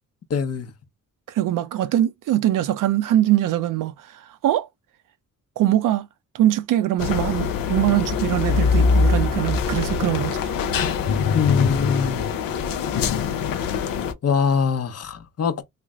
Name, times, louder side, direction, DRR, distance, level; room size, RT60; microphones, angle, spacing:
voice 1, 0.3-0.7 11.3-12.3 13.6-13.7 14.2-15.6, left 6 dB, 45° left, 0.8 m, -23 dB
voice 2, 1.3-4.7 5.6-6.1 6.3-10.5, right 13 dB, 70° right, 0.5 m, -22 dB
sound 1, 7.0-14.1, left 5 dB, 80° left, 0.7 m, -23 dB
3.3 x 2.1 x 3.6 m
supercardioid pair, 60°, 33 cm